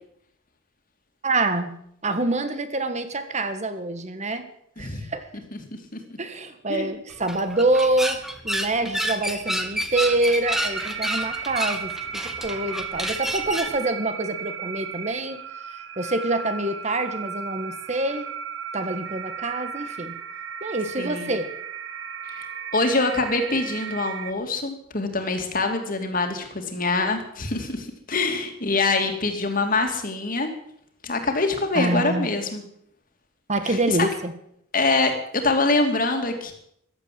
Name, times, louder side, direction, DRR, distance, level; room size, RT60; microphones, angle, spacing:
voice 1, 1.2-1.7 2.0-4.5 4.8-5.3 6.2-15.4 16.0-18.3 18.7-20.2 20.6-21.5 31.7-32.3 33.5-34.3, right 2 dB, 35° right, 9 dB, 1.6 m, -26 dB
voice 2, 4.8-5.1 5.5-5.6 5.9-6.0 6.7-6.9 21.0-21.3 22.2-22.4 22.7-30.5 31.0-32.6 33.6-34.1 34.7-36.5, left 3 dB, 45° left, 5 dB, 2.7 m, -24 dB
sound 1, 7.1-13.8, equal, ahead, 1.3 m, -29 dB
sound 2, 10.4-24.3, right 7 dB, 65° right, 1.1 m, -35 dB
15.0 x 12.0 x 7.7 m, 0.71 s
head